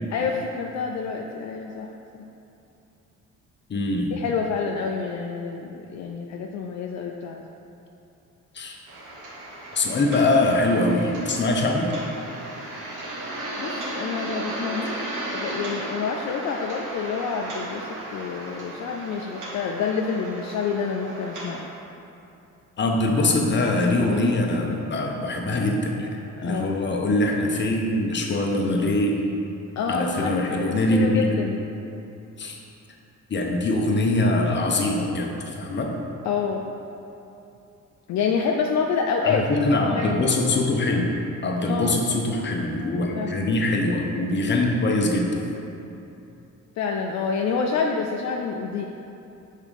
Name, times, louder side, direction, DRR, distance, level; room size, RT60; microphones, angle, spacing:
voice 1, 0.1-2.3 4.1-7.4 13.6-15.0 15.3-21.6 26.4-26.8 29.8-31.6 36.2-36.6 38.1-40.3 41.7-42.2 43.1-43.4 46.8-48.8, left 5 dB, 65° left, 1 dB, 0.5 m, -28 dB
voice 2, 3.7-4.1 8.5-8.8 9.7-11.9 22.8-29.2 29.9-31.3 32.4-32.6 33.3-35.9 39.2-39.3 39.7-41.1 41.4-45.4, left 2 dB, 35° left, 1 dB, 0.9 m, -23 dB
sound 1, 8.9-21.6, right 1 dB, 85° right, 1.5 m, -35 dB
5.6 x 3.7 x 5.2 m, 2.8 s
cardioid pair, 90°, 30 cm